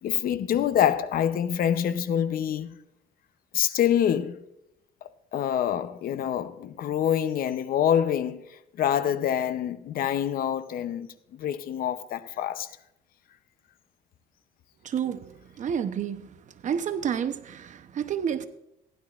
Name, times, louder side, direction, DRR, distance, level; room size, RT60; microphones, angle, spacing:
voice 1, 0.0-2.8 3.5-4.4 5.0-12.7, left 9 dB, 60° left, 0.7 m, -26 dB
voice 2, 14.8-15.2 15.6-16.3 16.6-18.4, right 8 dB, 45° right, 0.8 m, -29 dB
15.5 x 11.0 x 2.4 m
cardioid pair, 110°, 17 cm